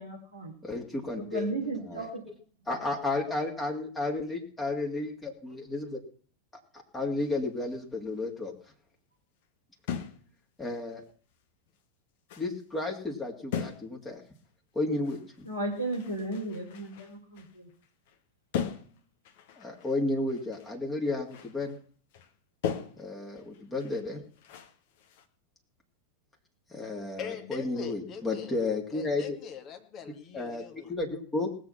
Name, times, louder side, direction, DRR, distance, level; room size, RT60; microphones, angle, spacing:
voice 1, 0.0-0.5 1.1-2.2 15.4-17.7, right 2 dB, 85° left, 1 dB, 4.0 m, -35 dB
voice 2, 0.6-2.0 2.7-6.0 6.9-8.5 10.6-11.0 12.4-14.2 14.7-15.5 19.6-21.7 23.0-24.2 26.7-29.2 30.3-30.6 30.9-31.5, left 2 dB, 15° left, 0 dB, 2.5 m, -32 dB
stamp post office mail, 7.2-7.5 9.9-10.4 10.7-10.8 11.7-11.8 12.3-12.6 13.5-14.1 14.3-14.5 15.0-18.2 18.5-20.8 21.0-21.8 22.1-22.3 22.6-25.3, left 8 dB, 50° left, 1.4 m, -39 dB
voice 3, 27.2-28.6 28.9-30.9, left 7 dB, 35° left, 5 dB, 2.1 m, -42 dB
19.0 x 7.5 x 5.8 m, 0.43 s
figure-of-eight pair, 90°, 0 cm